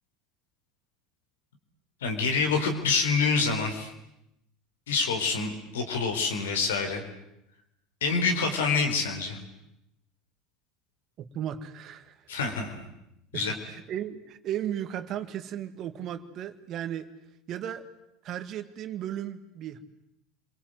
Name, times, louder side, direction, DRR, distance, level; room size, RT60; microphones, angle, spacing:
voice 1, 2.0-3.9 4.9-7.0 8.0-9.4 12.3-12.8 13.3-13.5, left 4 dB, 75° left, 4 dB, 4.2 m, -26 dB
voice 2, 11.2-12.2 13.3-17.1 17.5-17.9 18.2-19.8, right 10 dB, 45° right, 10 dB, 2.1 m, -35 dB
30.0 x 23.5 x 7.9 m, 0.84 s
figure-of-eight pair, 75°, 0 cm